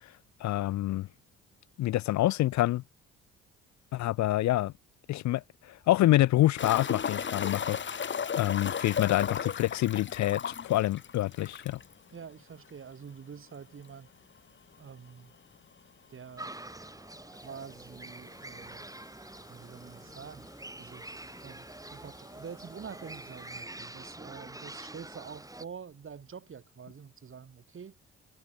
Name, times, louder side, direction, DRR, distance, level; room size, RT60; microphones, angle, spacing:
voice 1, 0.4-1.1 1.8-2.8 3.9-4.7 5.1-5.4 5.7-11.8, left 15 dB, 65° left, 0.5 m, -27 dB
sound 1, 6.6-11.9 12.2-12.3 12.7-12.8 15.6-15.7 17.3-17.4 18.2-18.3 18.5-18.6 19.5-19.6 19.8-20.4 21.4-21.5, left 7 dB, 40° left, 1.4 m, -35 dB
voice 2, 12.1-14.1 14.8-15.3 16.1-16.5 17.4-18.9 19.5-20.5 20.8-21.2 21.4-27.9, right 6 dB, 45° right, 3.4 m, -46 dB
sound 2, 16.4-25.7, right 2 dB, 10° right, 7.8 m, -46 dB
cardioid pair, 90°, 30 cm